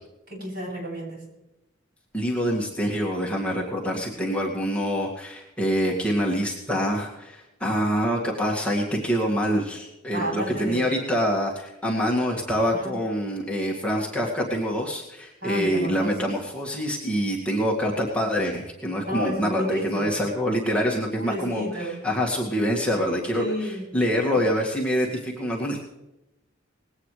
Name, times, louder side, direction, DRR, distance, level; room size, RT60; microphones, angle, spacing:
voice 1, 0.3-1.2 10.1-10.9 12.7-13.0 15.4-16.4 19.1-20.1 21.2-22.0 23.3-24.0, right 1 dB, 55° right, -4 dB, 7.5 m, -31 dB
voice 2, 2.1-25.8, equal, 5° left, -3 dB, 2.1 m, -26 dB
20.0 x 17.0 x 3.3 m, 0.93 s
head